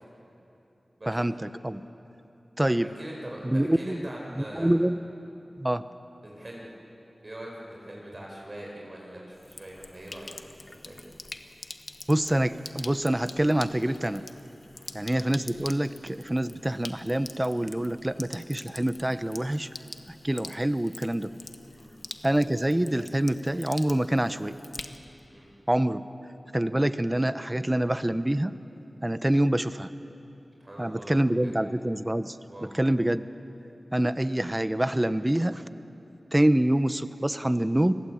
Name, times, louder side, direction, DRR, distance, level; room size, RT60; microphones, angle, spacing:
voice 1, 1.1-1.8 2.6-2.9 3.4-4.1 4.4-5.0 5.6-5.8 12.1-14.2 14.9-19.7 20.2-21.4 22.2-24.5 25.7-26.0 26.5-28.5 29.0-29.9 30.8-33.3 33.9-35.6 36.3-37.9, right 1 dB, 15° right, 12 dB, 1.0 m, -26 dB
voice 2, 2.7-4.7 6.2-6.7 7.2-11.0 14.7-14.9 21.8-21.9 25.3-25.5 30.6-31.5 32.5-32.7, right 1 dB, 40° right, -2 dB, 7.0 m, -42 dB
Sink (filling or washing), 9.3-25.3, left 2 dB, 45° left, 1.3 m, -45 dB
30.0 x 21.0 x 8.7 m, 2.9 s
wide cardioid pair, 60°, 0 cm